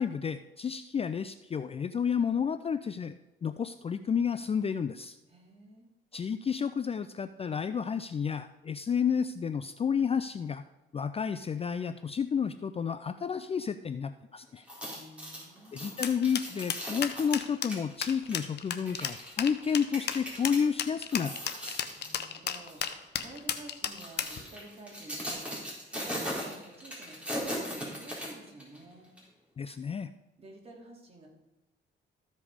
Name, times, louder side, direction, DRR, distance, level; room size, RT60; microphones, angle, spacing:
voice 1, 0.0-3.2 3.4-5.2 6.1-10.6 10.9-14.6 15.7-21.3 21.6-21.8 29.6-30.1, left 7 dB, 30° left, 11 dB, 0.4 m, -31 dB
voice 2, 5.3-5.9 14.9-15.8 21.9-29.1 30.4-31.3, right 2 dB, 30° right, -2 dB, 3.1 m, -50 dB
sound 1, 14.6-20.6 21.0-22.2 22.6-22.8 23.6-28.8 29.2-29.3, equal, 5° right, 4.0 m, -39 dB
sound 2, 16.0-24.4, left 8 dB, 60° left, 0.9 m, -33 dB
14.0 x 5.3 x 5.0 m, 1.0 s
cardioid pair, 90°, 20 cm